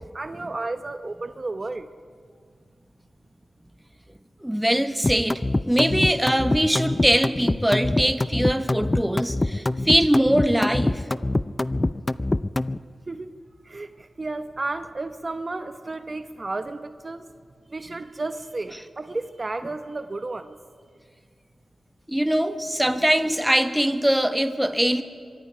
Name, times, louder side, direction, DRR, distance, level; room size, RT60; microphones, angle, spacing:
voice 1, 0.0-1.9 13.1-13.3 13.6-17.3 17.7-20.6, right 2 dB, 40° right, 8 dB, 0.8 m, -32 dB
voice 2, 4.4-11.0 22.1-25.0, equal, 5° right, 8 dB, 1.3 m, -22 dB
sound 1, 5.0-12.8, left 2 dB, 25° left, 0.5 m, -24 dB
25.5 x 23.0 x 5.5 m, 2.1 s
cardioid pair, 65°, 0 cm